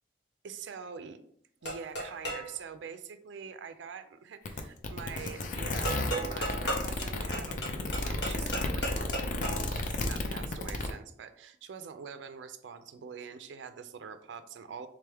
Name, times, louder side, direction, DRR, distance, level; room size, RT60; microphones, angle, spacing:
voice 1, 0.4-1.2 1.6-14.9, right 6 dB, 70° right, 9 dB, 0.4 m, -44 dB
sound 1, 1.6-2.5 5.8-9.8, right 1 dB, 70° left, 1.4 m, -35 dB
sound 2, 4.5-10.9, left 2 dB, 45° left, 0.4 m, -33 dB
3.5 x 3.4 x 3.3 m, 0.64 s
head